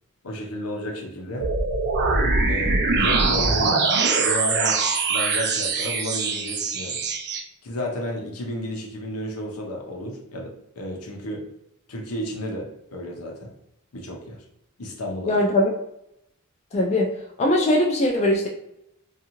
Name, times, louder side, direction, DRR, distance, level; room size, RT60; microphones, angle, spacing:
voice 1, 0.2-1.5 2.5-4.8 5.1-7.0 7.6-11.4 11.9-13.5 13.9-14.4 14.8-15.4, equal, 80° left, 0 dB, 0.7 m, -32 dB
sound 1, 1.4-7.4, right 4 dB, 50° right, 0.4 m, -22 dB
voice 2, 15.3-15.7 16.7-17.1 17.4-18.5, left 1 dB, 30° left, 0 dB, 0.3 m, -20 dB
2.6 x 2.3 x 2.8 m, 0.80 s
head